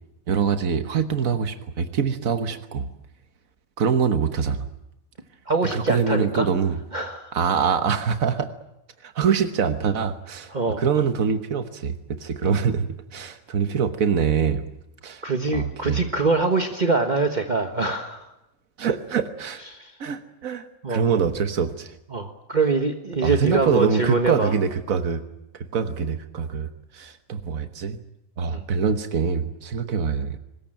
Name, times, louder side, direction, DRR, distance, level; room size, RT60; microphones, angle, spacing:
voice 1, 0.3-2.9 3.8-4.7 5.7-6.8 7.3-8.5 9.0-14.7 15.0-15.2 15.5-16.0 18.8-19.6 20.0-22.0 23.2-25.2 25.5-28.0 28.4-30.4, right 6 dB, 90° right, 9 dB, 1.6 m, -24 dB
voice 2, 5.5-6.5 6.9-7.3 10.5-10.8 12.4-12.6 15.2-18.3 19.7-20.0 20.8-21.0 22.1-24.5 28.5-28.6, right 3 dB, 35° right, 5 dB, 1.5 m, -24 dB
24.5 x 20.5 x 9.0 m, 0.88 s
omnidirectional pair, 1.4 m